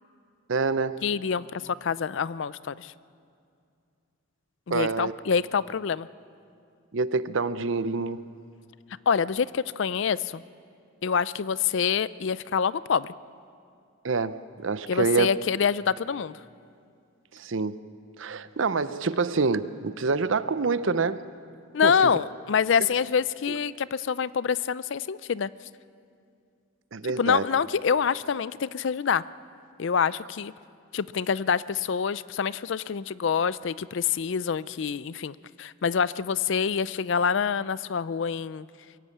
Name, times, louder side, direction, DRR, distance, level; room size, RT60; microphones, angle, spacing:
voice 1, 0.5-1.0 4.7-5.1 6.9-8.2 14.0-15.3 17.3-17.8 18.2-21.3 21.8-22.1 26.9-27.4, right 4 dB, 65° right, 14 dB, 0.7 m, -26 dB
voice 2, 1.0-2.9 4.7-6.1 9.1-10.4 11.0-13.1 14.9-16.4 21.7-25.5 27.2-29.2 29.8-30.5 30.9-38.7, left 6 dB, 60° left, 18 dB, 0.4 m, -26 dB
23.0 x 16.0 x 8.5 m, 2.4 s
head